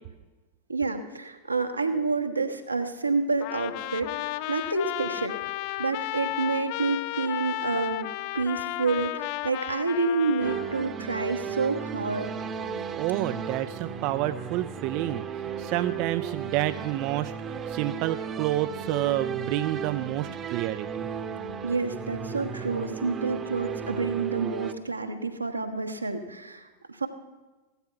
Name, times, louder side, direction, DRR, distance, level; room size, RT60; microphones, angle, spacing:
voice 1, 0.7-5.4 5.8-8.1 8.3-12.3 21.6-27.1, right 3 dB, 80° right, 6 dB, 1.3 m, -28 dB
Trumpet, 3.4-10.9, left 17 dB, 45° left, 0.4 m, -33 dB
sound 1, 10.4-24.7, right 7 dB, 25° right, 0.9 m, -35 dB
voice 2, 13.0-21.1, right 14 dB, 45° right, 13 dB, 0.4 m, -29 dB
15.5 x 12.0 x 5.7 m, 1.2 s
figure-of-eight pair, 90°, 0 cm